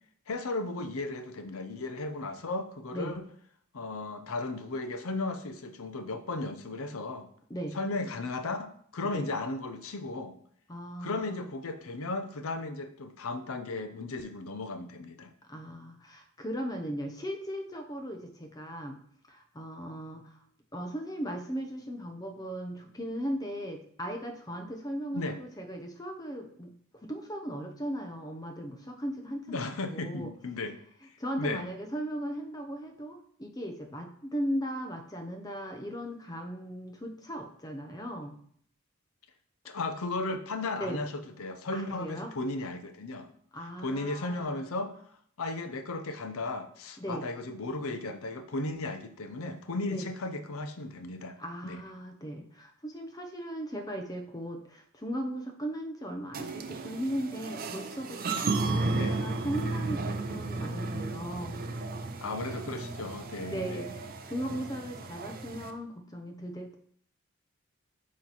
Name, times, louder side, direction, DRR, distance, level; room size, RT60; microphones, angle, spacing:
voice 1, 0.3-3.2 3.7-7.3 7.7-10.4 11.0-15.3 25.1-25.4 29.5-30.8 31.4-31.7 39.7-43.3 43.8-45.0 45.4-51.4 51.6-51.8 58.9-59.2 62.2-63.9 64.5-64.6, left 2 dB, 70° left, 8 dB, 0.7 m, -35 dB
voice 2, 10.7-11.5 15.5-19.0 19.3-20.3 20.7-26.7 27.0-30.3 31.2-38.4 40.8-41.0 41.7-42.3 43.5-44.7 47.0-47.2 49.9-50.1 51.4-61.7 63.4-63.9 64.2-66.8, equal, 15° left, 4 dB, 0.7 m, -37 dB
sound 1, 56.3-65.7, right 3 dB, 40° right, 0.5 m, -34 dB
8.4 x 3.2 x 4.1 m, 0.62 s
head